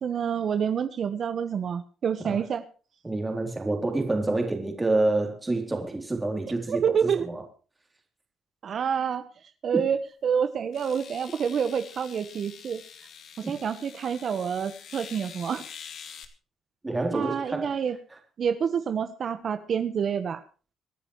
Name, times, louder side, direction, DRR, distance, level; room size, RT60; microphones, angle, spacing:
voice 1, 0.0-2.6 6.7-7.3 8.6-9.2 9.6-12.8 13.4-15.6 17.1-18.0 18.4-20.4, right 7 dB, 55° right, 11 dB, 1.3 m, -28 dB
voice 2, 3.0-7.4 9.7-9.8 13.4-13.6 16.8-17.7, right 2 dB, 20° right, 3 dB, 3.5 m, -28 dB
sound 1, 9.9-10.0 10.7-16.3, left 7 dB, 65° left, 2.3 m, -45 dB
25.5 x 10.0 x 3.2 m, 0.36 s
cardioid pair, 90°, 0 cm